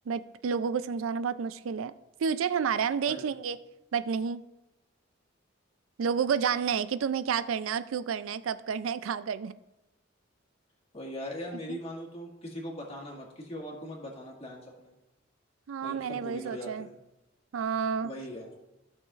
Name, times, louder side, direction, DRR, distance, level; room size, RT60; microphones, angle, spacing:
voice 1, 0.1-1.9 2.2-3.6 3.9-4.4 6.0-9.5 11.7-11.8 15.7-16.9 17.5-18.1, right 6 dB, 85° right, 14 dB, 0.4 m, -30 dB
voice 2, 10.9-14.9 15.8-16.9 18.0-18.5, equal, 30° left, -1 dB, 1.8 m, -40 dB
15.0 x 6.3 x 2.5 m, 0.98 s
head